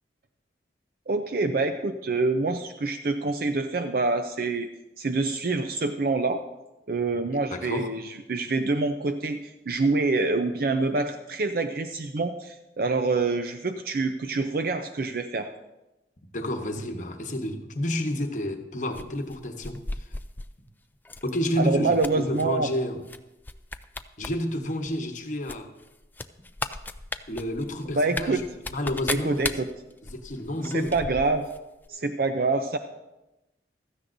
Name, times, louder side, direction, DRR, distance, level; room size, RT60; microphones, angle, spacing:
voice 1, 1.1-4.7 5.0-6.4 6.9-15.5 21.6-22.7 27.9-28.4 29.1-29.7 30.6-31.5 31.9-32.8, right 3 dB, 50° right, 7 dB, 0.5 m, -26 dB
voice 2, 7.5-7.9 16.3-20.1 21.2-23.0 24.2-25.7 27.3-28.4 28.7-29.5 30.0-30.9, left 1 dB, 40° left, 5 dB, 1.1 m, -30 dB
sound 1, 18.9-20.5 21.0-21.3 21.7-22.4 23.1-23.2 23.4-24.3 24.6-24.7 25.5-31.6 31.8-31.9, left 2 dB, 10° left, 0.3 m, -36 dB
16.0 x 13.5 x 2.6 m, 0.99 s
head